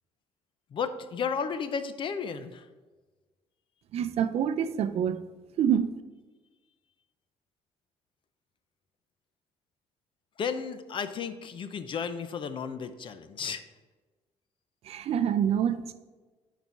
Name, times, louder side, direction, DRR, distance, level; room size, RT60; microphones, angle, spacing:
voice 1, 0.7-2.7 10.4-13.6, left 6 dB, 45° left, 0.6 m, -33 dB
voice 2, 3.9-5.2 5.6-5.9 14.9-15.9, right 8 dB, 60° right, 0.5 m, -26 dB
9.6 x 4.2 x 4.6 m
cardioid pair, 120°, 12 cm